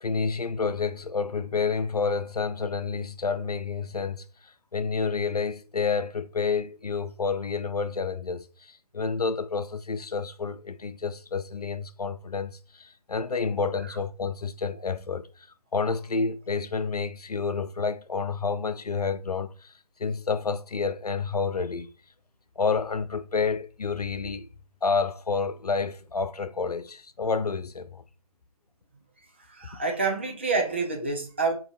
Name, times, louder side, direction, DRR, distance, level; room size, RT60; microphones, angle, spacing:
voice 1, 0.0-4.2 4.7-15.5 15.7-19.7 20.0-21.9 22.6-24.5 24.8-28.0, left 5 dB, 90° left, 0.4 m, -29 dB
voice 2, 29.5-31.5, right 3 dB, 20° right, 0.3 m, -27 dB
3.8 x 2.5 x 2.6 m
figure-of-eight pair, 145°, 19 cm